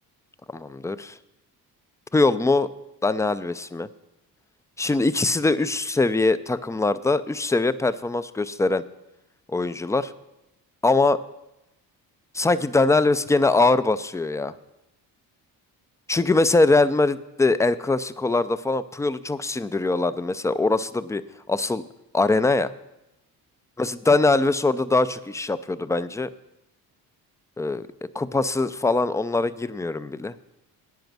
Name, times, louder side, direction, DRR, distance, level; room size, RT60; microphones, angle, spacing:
voice 1, 0.5-1.1 2.1-2.7 3.0-3.9 4.8-8.8 9.5-10.1 10.8-11.2 12.3-14.5 16.1-21.2 21.5-21.8 22.1-22.7 23.8-26.3 27.6-27.9 28.1-30.3, left 3 dB, 10° left, 14 dB, 0.4 m, -22 dB
10.5 x 9.1 x 6.1 m, 0.92 s
cardioid pair, 80°, 41 cm